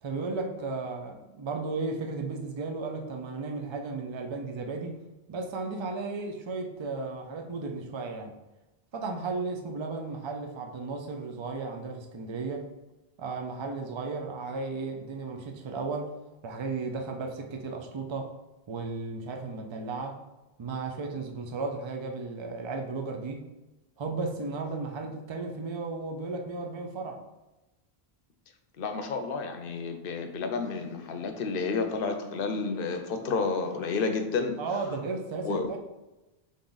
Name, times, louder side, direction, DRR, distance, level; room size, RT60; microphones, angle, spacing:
voice 1, 0.0-5.0 5.3-8.4 8.9-12.7 13.2-16.1 16.4-18.3 18.7-20.2 20.6-23.5 24.0-27.2 34.6-35.8, right 3 dB, 40° right, 3 dB, 0.4 m, -34 dB
voice 2, 28.8-34.6 35.4-35.7, left 4 dB, 65° left, 6 dB, 0.8 m, -30 dB
3.7 x 3.4 x 3.9 m, 1.0 s
omnidirectional pair, 1.0 m